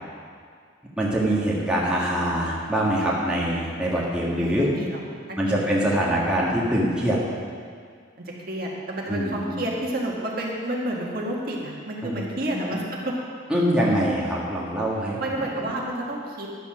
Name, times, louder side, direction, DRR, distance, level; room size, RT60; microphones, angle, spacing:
voice 1, 1.0-4.7 5.3-7.2 9.1-9.6 12.0-12.2 12.5-12.7 13.5-15.5, right 1 dB, 5° right, -6 dB, 1.6 m, -24 dB
voice 2, 4.2-5.0 5.3-5.9 8.2-13.1 15.2-16.5, right 1 dB, 50° right, -3 dB, 1.8 m, -30 dB
11.5 x 8.3 x 6.2 m, 2.1 s
head